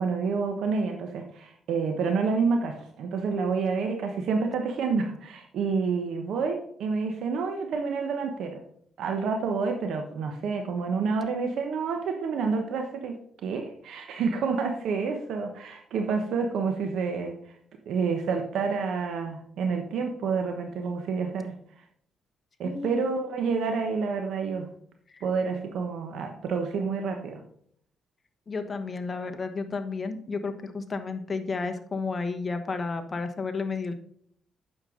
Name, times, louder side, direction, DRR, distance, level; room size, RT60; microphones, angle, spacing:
voice 1, 0.0-8.6 9.0-13.2 13.4-17.5 17.9-21.8 22.6-24.7 25.2-27.4, right 5 dB, 80° right, 4 dB, 1.0 m, -28 dB
voice 2, 22.6-23.1 25.1-25.2 28.5-33.9, left 4 dB, 35° left, 8 dB, 1.1 m, -32 dB
8.8 x 6.7 x 3.8 m, 0.65 s
cardioid pair, 95°, 0 cm